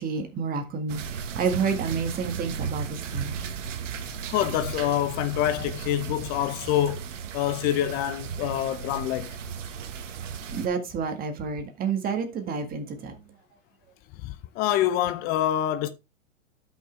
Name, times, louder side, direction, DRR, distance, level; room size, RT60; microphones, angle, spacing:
voice 1, 0.0-3.5 10.5-13.2, right 5 dB, 20° right, 1.8 m, -29 dB
sound 1, 0.9-10.7, right 7 dB, 70° right, 1.5 m, -35 dB
voice 2, 4.3-7.0 7.3-9.4 14.2-15.9, left 12 dB, 25° left, 0.7 m, -26 dB
12.5 x 5.7 x 3.2 m
hypercardioid pair, 130°, 39 cm